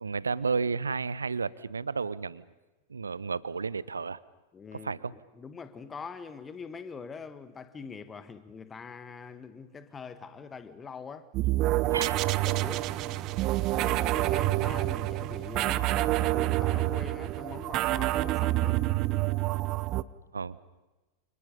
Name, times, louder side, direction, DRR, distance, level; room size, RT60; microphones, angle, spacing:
voice 1, 0.0-2.4 2.9-4.2 4.7-5.1 11.9-12.2 20.3-20.6, right 5 dB, 75° right, 0.7 m, -32 dB
voice 2, 4.5-11.3 11.8-13.4 13.7-18.8, left 5 dB, 20° left, 1.7 m, -43 dB
sound 1, 11.3-20.0, right 17 dB, 40° right, 0.8 m, -27 dB
29.5 x 28.0 x 5.5 m
figure-of-eight pair, 90°, 0 cm